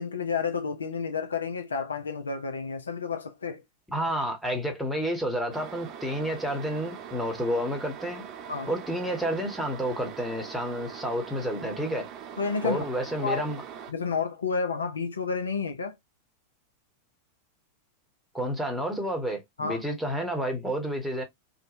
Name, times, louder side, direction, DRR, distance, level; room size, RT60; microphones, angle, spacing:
voice 1, 0.0-3.6 8.5-8.7 12.4-12.8 13.2-13.4 13.9-16.0 19.6-19.8, left 5 dB, 70° left, 0.4 m, -30 dB
voice 2, 3.9-8.2 8.7-12.1 12.6-13.6 18.3-21.2, equal, ahead, 0.9 m, -30 dB
sound 1, 5.5-13.9, right 8 dB, 35° right, 0.4 m, -42 dB
2.6 x 2.1 x 2.5 m
figure-of-eight pair, 90°, 0 cm